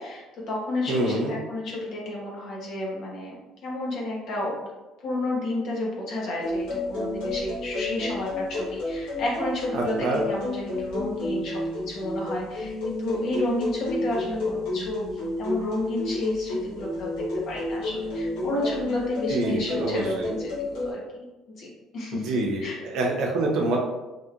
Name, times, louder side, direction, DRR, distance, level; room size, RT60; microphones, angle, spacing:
voice 1, 0.0-3.4 3.6-4.6 5.0-11.6 11.9-17.1 17.5-21.3 21.6-22.3 22.6-22.8, left 1 dB, 60° left, -3 dB, 1.0 m, -31 dB
voice 2, 0.9-1.4 9.7-10.2 19.3-20.3 22.1-23.8, right 2 dB, 65° right, -1 dB, 0.6 m, -26 dB
sound 1, 6.4-20.9, left 2 dB, 85° left, 1.0 m, -31 dB
3.0 x 2.8 x 2.5 m, 1.1 s
cardioid pair, 100°, 0 cm